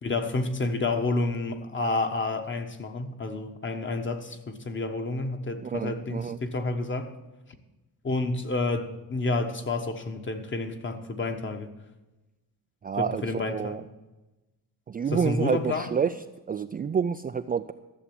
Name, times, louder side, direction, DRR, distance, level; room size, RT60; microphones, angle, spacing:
voice 1, 0.0-7.1 8.0-11.7 13.0-13.8 15.1-15.9, left 3 dB, 30° left, 7 dB, 1.3 m, -29 dB
voice 2, 5.6-6.4 12.8-13.8 14.9-16.1 16.5-17.7, right 6 dB, 25° right, 8 dB, 0.3 m, -28 dB
14.0 x 7.2 x 8.7 m, 1.0 s
cardioid pair, 145°, 37 cm